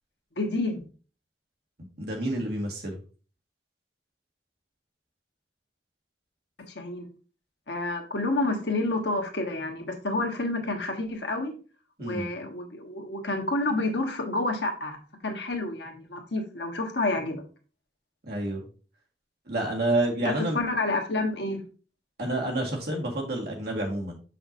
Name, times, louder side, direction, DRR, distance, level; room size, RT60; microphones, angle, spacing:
voice 1, 0.4-0.8 6.7-7.1 7.7-11.5 12.0-17.4 20.2-21.6, left 2 dB, 70° left, 3 dB, 1.3 m, -29 dB
voice 2, 2.0-3.0 12.0-12.3 18.3-18.6 19.5-20.6 22.2-24.2, right 1 dB, 60° right, 0 dB, 1.8 m, -29 dB
6.5 x 5.8 x 2.7 m, 0.37 s
head